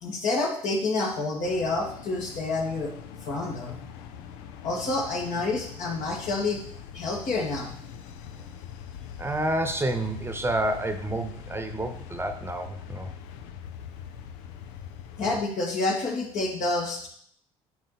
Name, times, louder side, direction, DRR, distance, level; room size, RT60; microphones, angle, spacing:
voice 1, 0.0-2.9 3.2-3.8 4.6-6.6 6.9-7.7 15.2-17.1, left 3 dB, 65° left, -1 dB, 2.4 m, -28 dB
sound 1, 1.4-15.4, left 8 dB, 80° left, 0.6 m, -42 dB
voice 2, 9.2-13.1, right 1 dB, 15° right, 7 dB, 1.0 m, -29 dB
9.3 x 4.7 x 4.1 m, 0.63 s
hypercardioid pair, 65°, 14 cm